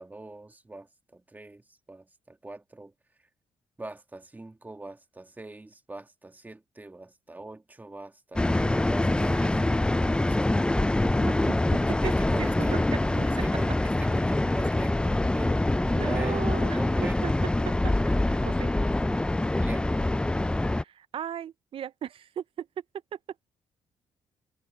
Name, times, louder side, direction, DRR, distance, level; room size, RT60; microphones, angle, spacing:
voice 1, 0.0-2.9 3.8-10.6 11.8-12.8 13.2-15.6 16.0-16.5 16.7-17.2 19.5-19.9, right 2 dB, 15° right, 1.9 m, -42 dB
sound 1, 8.4-20.8, left 2 dB, 10° left, 0.4 m, -25 dB
Motorcycle, 9.5-15.8, left 9 dB, 70° left, 7.7 m, -63 dB
voice 2, 11.2-11.8 12.4-12.8 13.2-13.4 15.8-17.3 17.6-18.7 20.8-22.7 23.1-23.2, right 9 dB, 60° right, 0.6 m, -37 dB
cardioid pair, 75°, 11 cm